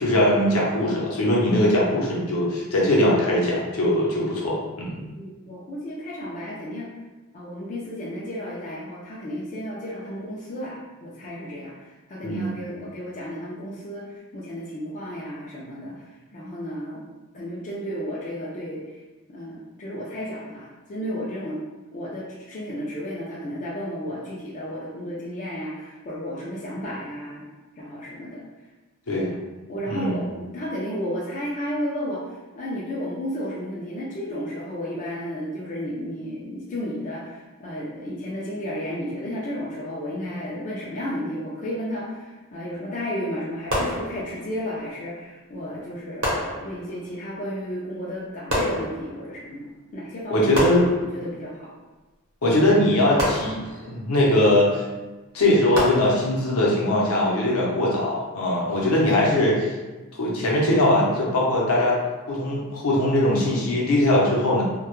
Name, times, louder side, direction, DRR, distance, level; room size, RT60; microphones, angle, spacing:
voice 1, 0.0-5.0 12.2-12.6 29.1-29.3 29.9-30.2 50.3-50.9 52.4-54.8 55.3-59.7 60.1-62.0 62.3-64.6, left 1 dB, 75° left, -4 dB, 0.6 m, -21 dB
voice 2, 5.1-6.9 7.3-16.1 16.3-17.1 17.3-18.8 19.3-21.6 21.9-27.4 27.8-28.4 29.1-29.3 29.7-51.7, equal, 35° left, -5 dB, 0.3 m, -33 dB
sound 1, 43.7-44.6 46.2-47.1 48.5-49.4 50.5-51.5 53.2-54.1 55.7-56.6, equal, 65° right, 0.8 m, -29 dB
2.1 x 2.0 x 2.9 m, 1.2 s
head